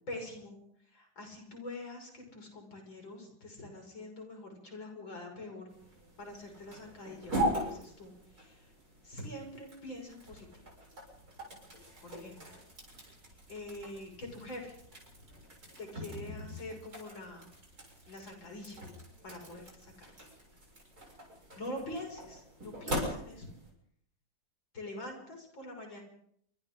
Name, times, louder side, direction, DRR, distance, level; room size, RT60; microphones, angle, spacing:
voice 1, 0.1-0.6 0.9-5.7 6.2-8.7 9.0-10.5 12.0-12.4 13.5-14.7 15.8-17.5 18.1-18.8 19.2-20.1 21.6-23.5 24.7-26.0, left 1 dB, 90° left, 2 dB, 6.9 m, -45 dB
sound 1, 5.7-23.7, right 1 dB, 50° right, 7.8 m, -41 dB
28.5 x 24.5 x 3.9 m, 0.68 s
omnidirectional pair, 2.0 m